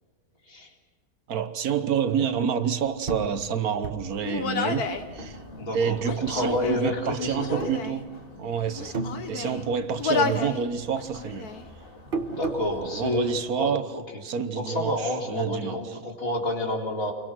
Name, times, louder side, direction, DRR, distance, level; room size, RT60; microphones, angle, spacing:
voice 1, 1.3-5.4 5.7-8.0 8.4-11.5 12.9-13.9 14.2-15.8, right 7 dB, 70° right, 1.5 m, -28 dB
sound 1, 3.1-5.9 6.3-7.1 7.5-8.4 8.7-10.0 10.3-12.8, right 3 dB, 35° right, 1.7 m, -35 dB
Human voice, 4.2-5.1 6.0-6.9 7.3-8.0 8.7-9.6 10.0-10.6 11.0-11.6, left 5 dB, 75° left, 1.9 m, -30 dB
sound 2, 4.7-13.4, left 1 dB, 35° left, 3.0 m, -48 dB
voice 2, 5.6-6.0 6.3-7.6 12.2-14.2 14.5-17.1, left 1 dB, 60° left, 4.0 m, -29 dB
28.0 x 23.0 x 6.2 m
omnidirectional pair, 1.6 m